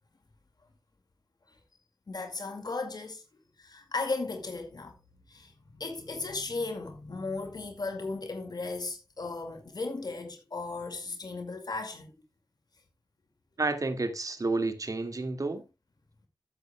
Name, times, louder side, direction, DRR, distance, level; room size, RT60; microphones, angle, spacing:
voice 1, 2.1-3.2 3.6-5.0 5.3-12.1, left 3 dB, 60° left, 2.1 m, -36 dB
voice 2, 13.6-15.6, right 3 dB, 45° right, 1.9 m, -30 dB
14.5 x 8.2 x 2.2 m
cardioid pair, 55°, 8 cm